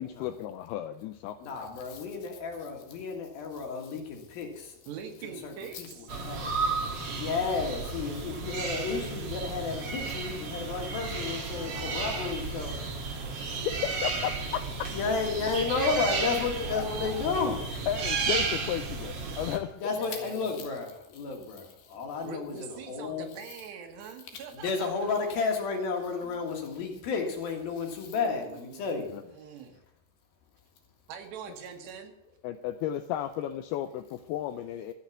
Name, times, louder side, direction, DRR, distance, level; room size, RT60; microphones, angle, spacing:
voice 1, 0.0-1.7 13.4-14.9 16.8-16.9 17.9-19.9 29.1-29.2 32.4-34.9, left 11 dB, 85° left, 9 dB, 2.3 m, -34 dB
voice 2, 1.4-4.7 5.2-6.5 7.2-12.8 14.9-17.7 19.8-23.3 24.5-29.1, left 4 dB, 60° left, 2 dB, 3.4 m, -32 dB
voice 3, 4.9-6.1 11.2-12.3 13.2-14.0 15.8-16.2 16.6-17.6 19.9-20.7 22.2-25.3 28.0-28.8 29.3-29.8 31.1-32.1, right 6 dB, 75° right, 5 dB, 3.4 m, -44 dB
sound 1, 6.1-19.6, right 4 dB, 55° right, 1.7 m, -33 dB
13.5 x 6.5 x 8.3 m, 0.88 s
omnidirectional pair, 5.0 m